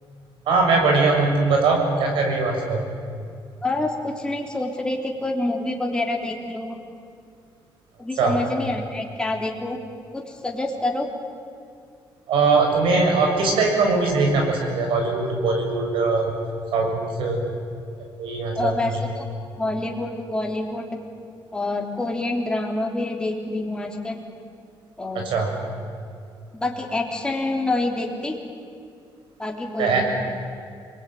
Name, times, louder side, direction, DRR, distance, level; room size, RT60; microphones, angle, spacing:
voice 1, 0.5-2.9 8.2-8.3 12.3-16.4 16.7-17.4 18.2-18.7 25.2-25.5 29.8-30.0, right 3 dB, 90° right, 2 dB, 7.0 m, -21 dB
voice 2, 3.6-6.8 8.0-9.8 10.1-11.1 18.6-19.2 19.6-21.0 21.5-24.2 25.0-25.3 26.5-28.4 29.4-30.0, left 2 dB, 10° left, 1 dB, 3.5 m, -27 dB
28.5 x 22.0 x 9.3 m, 2.4 s
cardioid pair, 145°, 9 cm